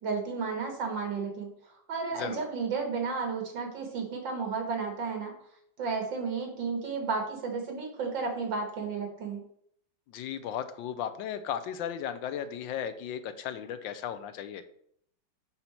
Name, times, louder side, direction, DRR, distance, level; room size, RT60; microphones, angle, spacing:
voice 1, 0.0-1.5 1.9-5.3 5.8-9.4, right 4 dB, 80° right, 2 dB, 2.2 m, -32 dB
voice 2, 10.1-14.6, left 9 dB, 85° left, 10 dB, 1.4 m, -35 dB
5.7 x 5.4 x 4.4 m, 0.67 s
omnidirectional pair, 2.0 m